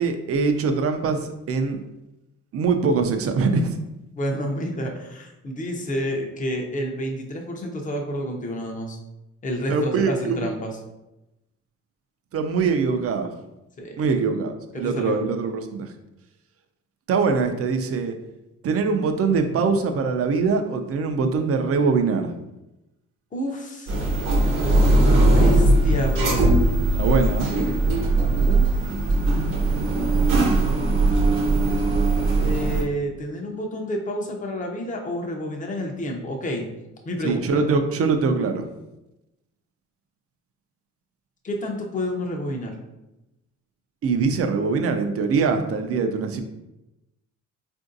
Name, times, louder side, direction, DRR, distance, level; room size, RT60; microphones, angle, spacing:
voice 1, 0.0-1.8 2.5-3.8 9.7-10.5 12.3-13.3 14.0-15.9 17.1-18.1 18.6-22.3 27.0-27.5 37.2-38.7 44.0-46.4, right 4 dB, 50° right, 6 dB, 0.5 m, -23 dB
voice 2, 4.1-9.0 9.4-10.8 13.8-14.1 14.7-15.2 23.3-24.0 25.2-26.5 28.4-28.9 32.4-36.6 37.1-37.6 41.4-42.8, equal, 25° left, 2 dB, 0.6 m, -29 dB
sound 1, 23.9-32.8, right 2 dB, 75° right, 0.9 m, -19 dB
3.7 x 2.6 x 2.5 m, 0.94 s
cardioid pair, 90°, 30 cm